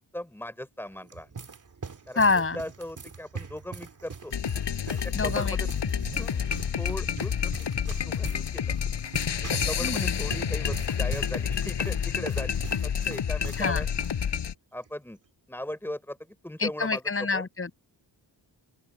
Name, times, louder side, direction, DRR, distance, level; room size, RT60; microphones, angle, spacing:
voice 1, 0.1-1.4 2.1-4.3 4.9-5.6 6.0-6.4 6.8-8.7 9.4-13.9 14.2-14.3 14.7-15.2 15.5-17.0 17.3-17.5, left 1 dB, 5° left, 5.2 m, -39 dB
sound 1, 0.8-13.7 13.9-14.1 14.8-15.1, right 5 dB, 45° right, 3.2 m, -42 dB
voice 2, 2.2-2.6 5.1-5.6 6.1-6.2 9.8-10.2 13.6-13.9 16.6-17.7, left 3 dB, 30° left, 7.2 m, -26 dB
sound 2, 4.3-14.5, left 7 dB, 85° left, 5.5 m, -29 dB
open air
wide cardioid pair, 150°, 42 cm